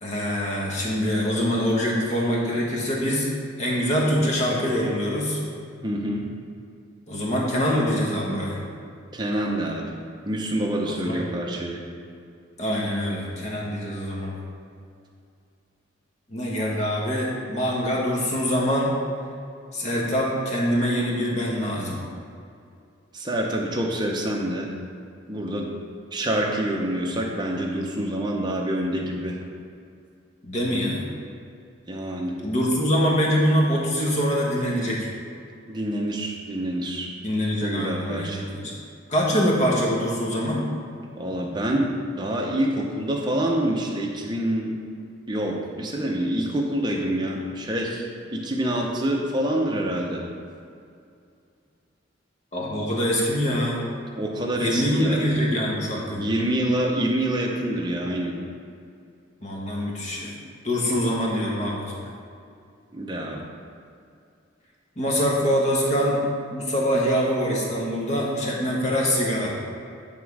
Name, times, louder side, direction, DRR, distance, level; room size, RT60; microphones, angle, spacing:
voice 1, 0.0-3.3 3.6-5.4 7.1-8.6 10.8-11.2 12.6-14.4 16.3-18.9 19.7-22.0 30.4-31.1 32.4-35.1 37.2-38.8 39.1-40.7 52.5-53.8 54.6-56.3 59.4-62.0 65.0-66.2 66.5-69.5, equal, 35° left, -3 dB, 1.2 m, -24 dB
voice 2, 5.8-6.2 9.1-9.8 10.2-11.8 23.1-24.7 25.3-25.7 26.1-29.4 31.9-32.4 35.7-37.1 37.6-38.4 41.2-44.7 45.3-48.1 48.3-50.2 54.1-55.2 56.1-58.3 62.9-63.4, right 1 dB, 20° right, -1 dB, 0.7 m, -26 dB
9.1 x 3.6 x 4.8 m, 2.4 s
head